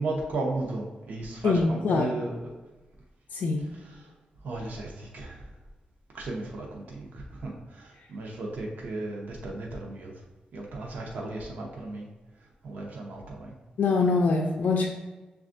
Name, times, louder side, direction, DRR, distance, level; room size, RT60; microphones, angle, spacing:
voice 1, 0.0-2.5 3.7-4.1 4.4-5.5 6.1-10.1 10.5-12.1 12.4-13.6, right 2 dB, 70° right, -1 dB, 0.7 m, -35 dB
voice 2, 1.4-2.1 3.3-3.6 13.8-14.9, left 4 dB, 70° left, 0 dB, 0.4 m, -24 dB
6.9 x 2.4 x 2.5 m, 1.2 s
wide cardioid pair, 155°, 3 cm